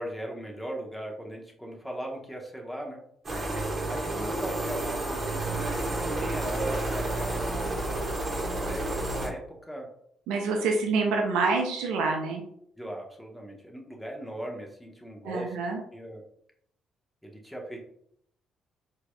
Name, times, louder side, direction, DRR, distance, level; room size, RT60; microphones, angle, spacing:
voice 1, 0.0-3.0 3.9-9.9 12.8-15.6 15.9-16.2 17.2-17.8, right 1 dB, 5° left, 0 dB, 1.1 m, -38 dB
sound 1, 3.2-9.3, right 2 dB, 35° right, 1.5 m, -30 dB
voice 2, 10.3-12.4 15.2-15.8, right 4 dB, 70° right, 1 dB, 0.5 m, -27 dB
4.5 x 2.7 x 2.3 m, 0.71 s
hypercardioid pair, 45°, 0 cm